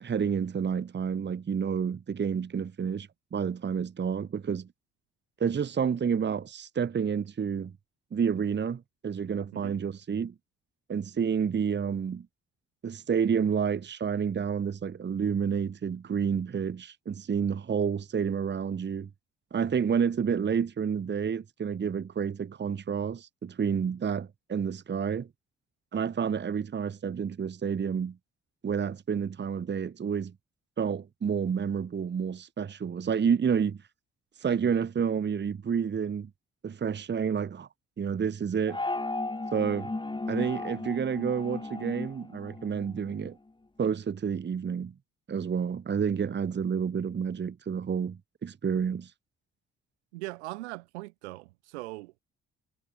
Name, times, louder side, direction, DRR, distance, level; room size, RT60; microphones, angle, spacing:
voice 1, 0.0-4.7 5.4-7.7 8.1-10.3 10.9-12.3 12.8-19.1 19.5-25.3 25.9-28.2 28.6-30.3 30.8-33.8 34.4-36.3 36.6-37.7 38.0-38.8 39.5-39.9 40.3-43.4 43.8-44.9 45.3-49.1, right 7 dB, 35° right, 1.1 m, -29 dB
sound 1, 38.7-43.3, left 2 dB, 15° left, 1.5 m, -35 dB
voice 2, 50.1-52.2, right 21 dB, 85° right, 2.4 m, -40 dB
hypercardioid pair, 45°, 33 cm